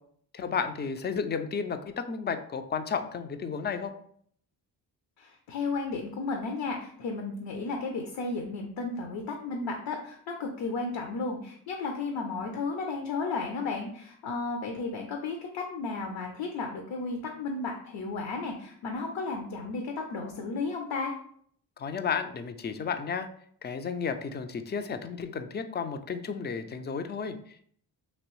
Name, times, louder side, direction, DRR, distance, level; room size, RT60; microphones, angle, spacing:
voice 1, 0.3-3.9 21.8-23.3 23.6-27.6, left 6 dB, 25° left, 9 dB, 0.3 m, -33 dB
voice 2, 5.2-21.1, left 3 dB, 70° left, 3 dB, 0.7 m, -33 dB
3.0 x 2.9 x 3.1 m, 0.62 s
supercardioid pair, 45°, 47 cm